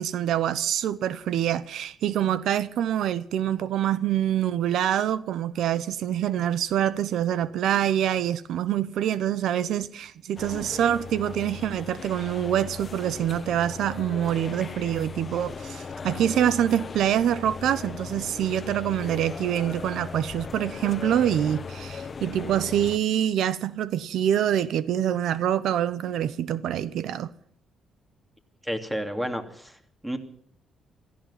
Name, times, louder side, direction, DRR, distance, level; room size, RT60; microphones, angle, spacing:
voice 1, 0.0-27.3, right 10 dB, 75° right, 0.7 m, -25 dB
sound 1, 10.4-23.0, left 5 dB, 40° left, 1.1 m, -38 dB
voice 2, 28.6-30.2, equal, 5° right, 2.7 m, -31 dB
16.5 x 14.5 x 5.8 m
cardioid pair, 90°, 0 cm